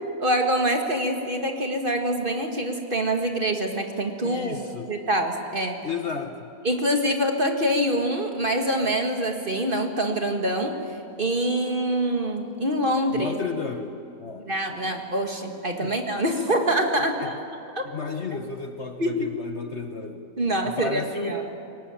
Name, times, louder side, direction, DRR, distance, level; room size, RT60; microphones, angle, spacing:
voice 1, 0.2-4.6 4.8-5.9 6.6-13.3 14.5-17.3 17.7-17.8 19.0-19.3 20.4-21.4, right 1 dB, 30° right, 3 dB, 1.8 m, -25 dB
voice 2, 4.2-4.9 5.8-6.5 13.1-14.9 15.8-15.9 17.2-17.4 17.8-20.3 20.6-21.3, left 5 dB, 45° left, 5 dB, 1.3 m, -33 dB
22.5 x 19.0 x 8.8 m, 2.6 s
omnidirectional pair, 1.8 m